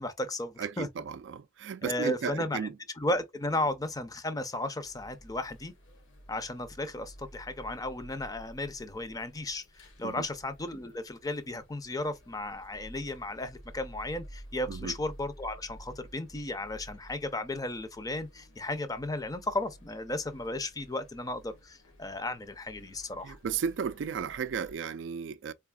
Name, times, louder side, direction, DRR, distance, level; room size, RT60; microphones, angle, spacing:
voice 1, 0.0-0.9 1.8-2.7 3.0-5.7 6.3-23.4, left 1 dB, 20° left, 0.5 m, -34 dB
voice 2, 0.6-2.8 10.0-10.2 14.7-15.0 23.2-25.5, right 6 dB, 65° right, 0.3 m, -34 dB
sound 1, 4.8-24.8, equal, 80° left, 1.5 m, -52 dB
3.8 x 3.4 x 2.3 m
head